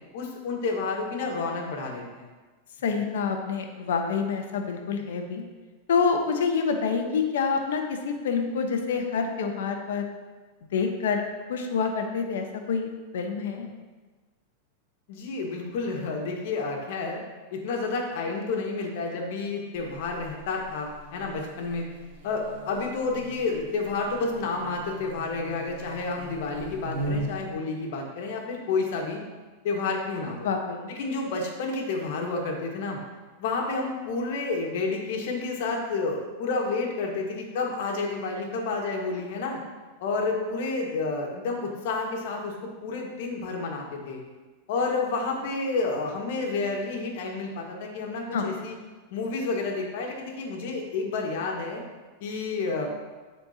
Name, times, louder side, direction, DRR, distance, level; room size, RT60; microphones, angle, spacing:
voice 1, 0.1-2.3 15.1-17.2 17.5-21.9 22.2-29.2 29.6-30.5 30.9-33.0 33.4-39.6 40.0-42.5 42.8-44.2 44.7-48.8 49.1-51.8 52.2-52.9, left 3 dB, 65° left, 0 dB, 1.6 m, -30 dB
voice 2, 2.8-5.4 5.9-10.1 10.7-11.2 11.5-13.7 30.4-30.9 48.3-48.6, left 5 dB, 80° left, 4 dB, 1.0 m, -27 dB
Buzz, 19.7-27.5, right 2 dB, 70° right, 1.3 m, -39 dB
13.0 x 4.4 x 2.9 m, 1.3 s
supercardioid pair, 135°, 0 cm